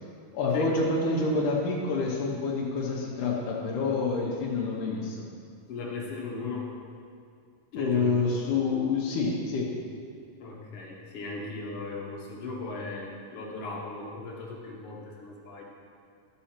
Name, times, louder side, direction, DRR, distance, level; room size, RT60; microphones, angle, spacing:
voice 1, 0.3-5.3 7.7-9.8, left 3 dB, 80° left, -4 dB, 2.5 m, -27 dB
voice 2, 5.7-6.7 7.7-8.1 10.4-15.6, left 3 dB, 55° left, -2 dB, 2.0 m, -38 dB
12.5 x 6.3 x 4.4 m, 2.3 s
omnidirectional pair, 3.6 m